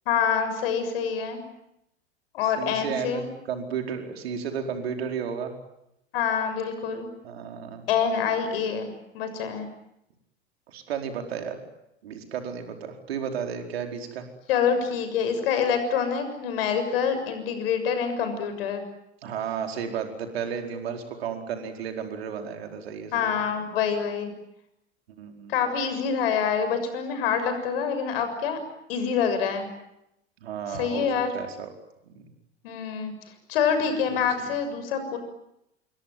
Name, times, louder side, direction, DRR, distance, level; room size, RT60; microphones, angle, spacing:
voice 1, 0.0-1.4 2.3-3.3 6.1-7.1 7.9-8.9 9.1-9.7 14.5-18.8 23.1-24.3 25.5-28.6 28.9-29.7 30.7-31.3 32.6-33.1 33.5-35.2, left 7 dB, 60° left, 9 dB, 6.8 m, -26 dB
voice 2, 2.4-3.2 3.5-5.5 7.2-7.9 10.7-11.6 12.0-14.3 19.2-23.3 25.2-25.5 30.4-31.7 32.1-32.3 34.2-34.3, right 7 dB, 65° right, 5 dB, 4.7 m, -33 dB
28.0 x 23.0 x 9.2 m, 0.82 s
figure-of-eight pair, 80°, 33 cm